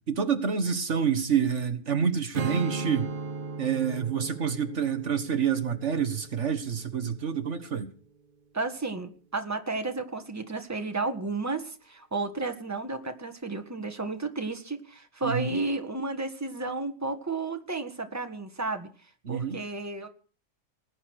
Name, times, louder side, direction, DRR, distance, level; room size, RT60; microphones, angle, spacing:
voice 1, 0.1-3.1 3.6-7.9 15.2-15.6 19.3-19.6, right 7 dB, 70° right, 1.8 m, -28 dB
Strum, 2.3-7.7, right 3 dB, 45° right, 1.1 m, -37 dB
voice 2, 8.5-18.9 19.3-20.1, right 3 dB, 15° right, 1.7 m, -32 dB
20.0 x 9.8 x 6.4 m
omnidirectional pair, 1.3 m